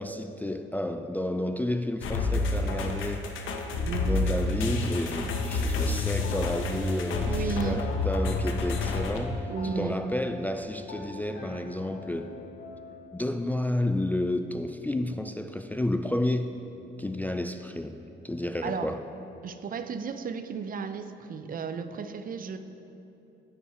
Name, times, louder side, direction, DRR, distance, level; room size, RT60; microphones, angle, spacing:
voice 1, 0.0-3.3 4.1-7.3 7.6-9.5 9.8-12.4 13.1-16.6 17.0-19.0, left 1 dB, 10° left, 7 dB, 0.3 m, -31 dB
sound 1, 2.0-9.2, left 3 dB, 80° left, 0.9 m, -29 dB
voice 2, 3.9-4.3 7.2-7.9 9.5-10.0 18.6-18.9 19.4-22.6, right 5 dB, 45° right, 9 dB, 0.6 m, -34 dB
Piano, 6.2-13.1, left 3 dB, 40° left, 1.1 m, -44 dB
9.4 x 8.6 x 4.3 m, 2.9 s
cardioid pair, 90°, 20 cm